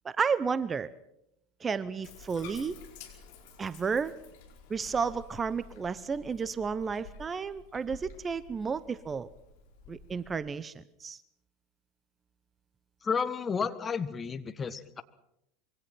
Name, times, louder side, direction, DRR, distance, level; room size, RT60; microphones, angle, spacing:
voice 1, 0.0-0.9 1.6-2.8 3.6-4.1 4.7-9.3 9.9-11.2, right 5 dB, 25° right, 18 dB, 0.9 m, -32 dB
Bathtub (filling or washing), 2.0-10.4, left 5 dB, 60° left, 4.6 m, -51 dB
voice 2, 13.0-15.0, left 6 dB, 25° left, 11 dB, 1.6 m, -32 dB
25.5 x 23.0 x 5.9 m, 0.81 s
figure-of-eight pair, 80°, 0 cm